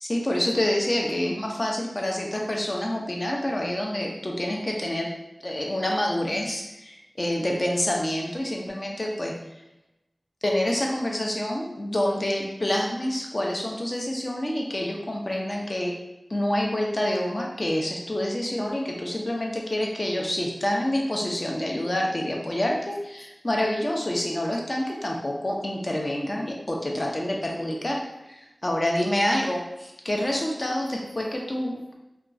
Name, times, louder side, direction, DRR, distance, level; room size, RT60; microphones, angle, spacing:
voice 1, 0.0-5.1 5.4-9.3 10.4-15.9 16.3-28.0 28.3-29.6 30.0-31.9, left 1 dB, 40° left, -1 dB, 0.5 m, -27 dB
2.9 x 2.2 x 2.4 m, 0.94 s
wide cardioid pair, 55°, 0 cm